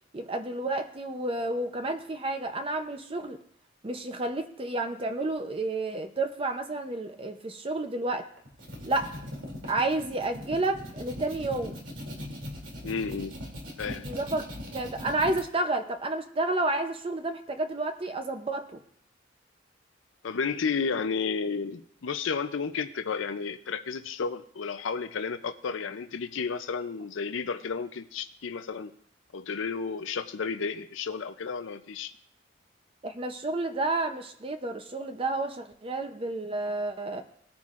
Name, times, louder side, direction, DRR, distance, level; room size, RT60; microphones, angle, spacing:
voice 1, 0.1-3.4 3.8-8.3 8.8-9.1 9.7-11.7 14.0-18.8 33.0-37.2, right 2 dB, 30° right, 7 dB, 0.6 m, -30 dB
sound 1, 8.4-15.4, left 1 dB, 80° right, 2.8 m, -40 dB
voice 2, 12.8-13.3 13.8-14.1 20.2-28.9 29.3-32.1, left 5 dB, 85° left, 10 dB, 0.5 m, -32 dB
18.5 x 9.5 x 2.5 m, 0.65 s
head